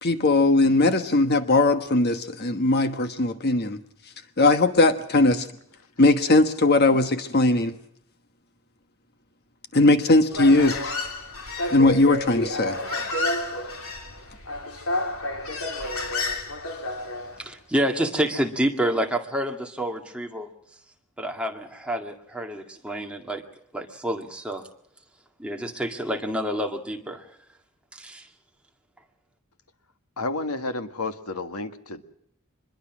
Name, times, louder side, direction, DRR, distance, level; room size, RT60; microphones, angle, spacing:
voice 1, 0.0-3.8 4.4-5.5 6.0-7.7 9.7-10.8 11.7-12.8, left 2 dB, 45° left, 9 dB, 1.3 m, -19 dB
Human voice, 10.3-17.4, left 2 dB, 70° left, 3.2 m, -30 dB
voice 2, 17.4-20.5 21.2-23.4 23.7-24.7 25.4-27.3 27.9-28.3, right 1 dB, 5° right, 2 dB, 2.0 m, -28 dB
voice 3, 30.2-32.0, left 2 dB, 90° left, 8 dB, 1.8 m, -31 dB
25.0 x 21.5 x 6.2 m, 0.71 s
head